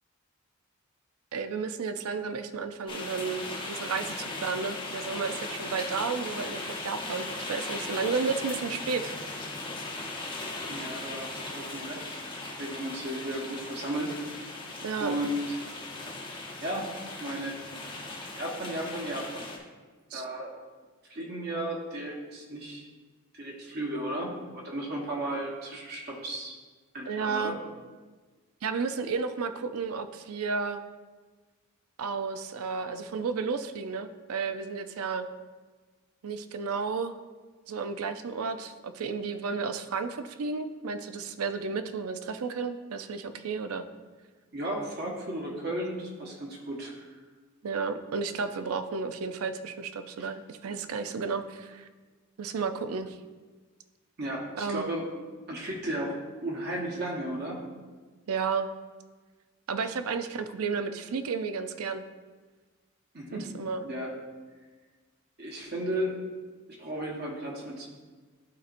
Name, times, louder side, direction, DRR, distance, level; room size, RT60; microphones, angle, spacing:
voice 1, 1.3-9.1 9.4-9.5 14.8-15.2 20.1-20.2 27.1-27.6 28.6-30.8 32.0-35.3 36.2-37.1 37.7-43.9 47.6-51.9 52.4-53.2 54.6-54.9 58.3-58.7 59.7-62.0 63.3-63.8, right 5 dB, 85° right, 9 dB, 0.5 m, -32 dB
sound 1, 2.9-19.6, left 2 dB, 25° left, 0.8 m, -38 dB
voice 2, 10.7-14.1 15.0-15.6 16.6-16.9 17.2-17.6 18.3-19.5 20.1-20.5 21.1-22.9 23.3-26.6 26.9-27.5 44.5-47.0 50.6-50.8 54.2-55.0 55.5-57.6 63.1-63.5 63.8-64.1 65.4-66.2 66.8-67.9, right 1 dB, 45° right, -2 dB, 1.2 m, -34 dB
12.0 x 4.3 x 2.5 m, 1.4 s
head